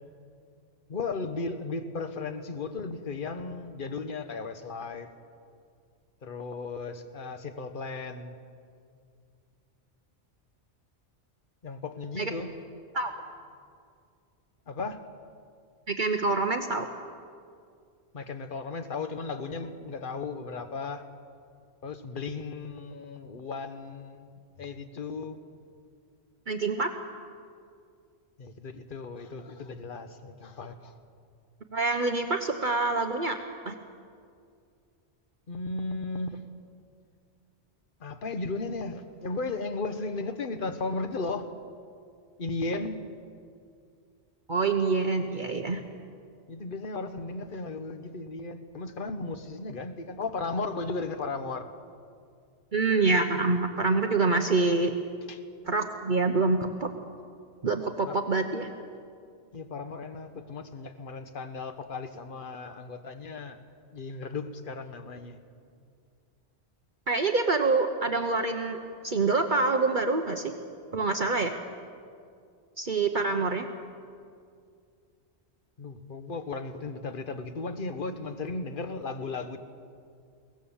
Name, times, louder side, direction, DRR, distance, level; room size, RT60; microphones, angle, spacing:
voice 1, 0.9-5.1 6.2-8.4 11.6-12.6 14.7-15.0 18.1-21.0 21.8-24.3 24.6-25.4 28.4-30.9 35.5-36.4 38.0-41.5 42.4-43.0 46.5-51.7 55.3-55.4 58.0-58.2 59.5-63.6 63.9-65.4 75.8-79.6, left 3 dB, 50° left, 8 dB, 1.3 m, -35 dB
voice 2, 15.9-16.9 26.5-26.9 31.7-33.4 33.6-33.7 44.5-45.8 52.7-54.9 55.7-56.9 57.6-58.7 67.1-68.8 69.0-70.5 70.9-71.6 72.8-73.7, right 3 dB, 45° right, 5 dB, 1.1 m, -26 dB
22.5 x 18.0 x 7.2 m, 2.3 s
omnidirectional pair, 1.2 m